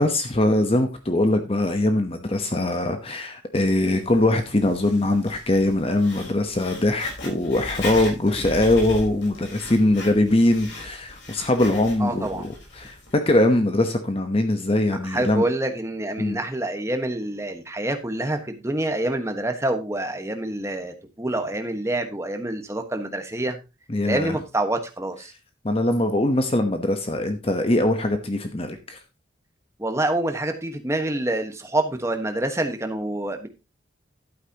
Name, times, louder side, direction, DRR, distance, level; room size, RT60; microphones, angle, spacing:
voice 1, 0.0-15.4 16.2-16.4 23.9-24.4 25.6-29.0, left 1 dB, 30° left, 7 dB, 1.0 m, -22 dB
Writing, 3.9-13.1, left 2 dB, 75° left, 4.4 m, -38 dB
voice 2, 12.0-12.5 15.0-23.6 24.0-25.3 29.8-33.5, right 1 dB, 15° right, 6 dB, 1.3 m, -27 dB
11.5 x 9.1 x 2.9 m, 0.27 s
head